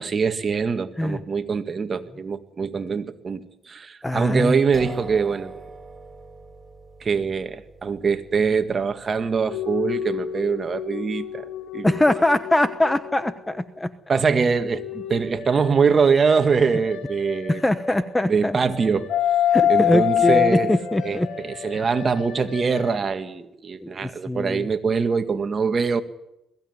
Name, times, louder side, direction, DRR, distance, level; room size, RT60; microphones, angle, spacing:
voice 1, 0.0-5.5 7.0-12.0 14.1-17.6 18.2-19.1 19.7-20.7 21.0-26.0, right 5 dB, 40° right, 1.9 m, -23 dB
voice 2, 4.0-4.5 11.8-13.9 17.5-18.6 19.5-21.3 23.8-24.7, left 1 dB, 10° left, 1.1 m, -22 dB
sound 1, 4.7-12.3, right 3 dB, 20° right, 4.8 m, -44 dB
sound 2, 9.5-13.5 14.6-18.2 18.7-23.0, left 10 dB, 85° left, 2.7 m, -27 dB
21.5 x 15.5 x 9.6 m
cardioid pair, 90°, 0 cm